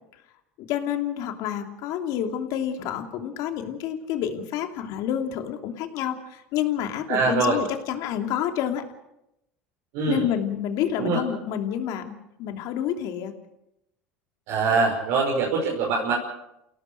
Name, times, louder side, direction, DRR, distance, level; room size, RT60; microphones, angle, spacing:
voice 1, 0.6-8.8 10.1-13.3, left 10 dB, 65° left, 5 dB, 2.9 m, -29 dB
voice 2, 7.1-7.6 9.9-10.2 11.0-11.2 14.5-16.1, right 4 dB, 70° right, -3 dB, 5.5 m, -23 dB
28.5 x 17.5 x 6.6 m, 0.85 s
hypercardioid pair, 90°, 7 cm